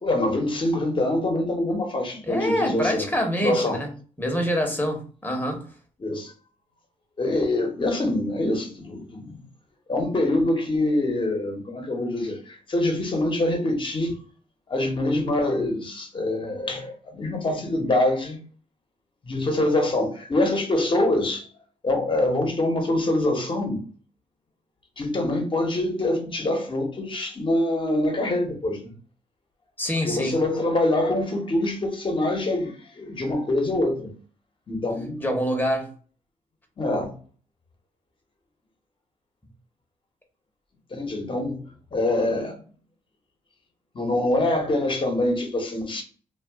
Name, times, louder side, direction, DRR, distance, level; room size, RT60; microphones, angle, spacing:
voice 1, 0.0-3.1 3.4-3.8 6.0-6.3 7.2-9.4 9.9-14.1 14.7-18.4 19.2-21.5 21.8-23.8 25.0-28.9 30.0-34.1 34.7-35.2 36.8-37.1 40.9-41.6 41.9-42.6 43.9-46.0, left 1 dB, 35° left, 1.1 m, -25 dB
voice 2, 2.2-3.9 4.2-5.6 16.4-16.6 29.8-30.4 35.2-35.9, equal, 15° left, 1.0 m, -26 dB
2.4 x 2.3 x 3.5 m
cardioid pair, 65°, 14 cm